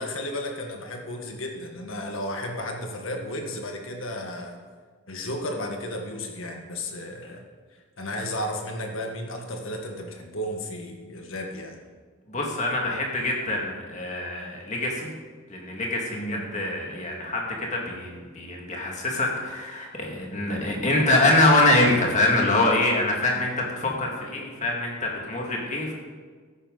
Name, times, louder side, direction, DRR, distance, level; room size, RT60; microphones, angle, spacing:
voice 1, 0.0-4.6 5.1-7.5 8.0-11.8 16.1-16.4 23.3-23.4, left 1 dB, 70° left, 2 dB, 1.7 m, -33 dB
voice 2, 12.3-15.1 15.5-25.9, left 2 dB, 35° left, -1 dB, 2.2 m, -24 dB
13.0 x 10.0 x 4.0 m, 1.5 s
head